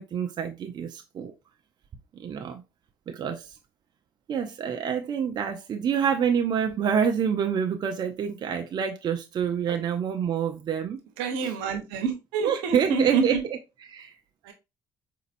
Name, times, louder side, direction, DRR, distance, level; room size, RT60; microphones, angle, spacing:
voice 1, 0.0-1.3 2.1-2.6 3.1-3.5 4.3-11.0 11.4-11.5 12.4-14.1, right 7 dB, 50° right, 0.6 m, -27 dB
voice 2, 11.2-13.2 14.5-14.6, right 5 dB, 85° right, 1.0 m, -27 dB
5.0 x 2.9 x 2.6 m
supercardioid pair, 70°, 9 cm